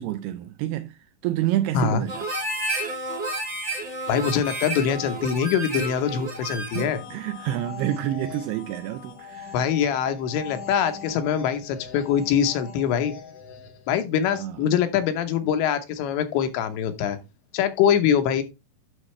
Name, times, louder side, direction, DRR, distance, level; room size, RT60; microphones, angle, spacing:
voice 1, 0.0-2.3 6.3-6.5 6.7-9.6 14.3-14.6, right 13 dB, 85° right, 2.3 m, -29 dB
Harmonica, 2.1-7.0, right 1 dB, 50° right, 0.8 m, -31 dB
voice 2, 4.1-7.0 9.5-13.2 13.9-17.2 17.5-18.4, left 8 dB, 85° left, 3.3 m, -23 dB
sound 1, 6.6-14.0, left 5 dB, 65° left, 1.7 m, -41 dB
9.8 x 6.3 x 3.2 m
omnidirectional pair, 5.1 m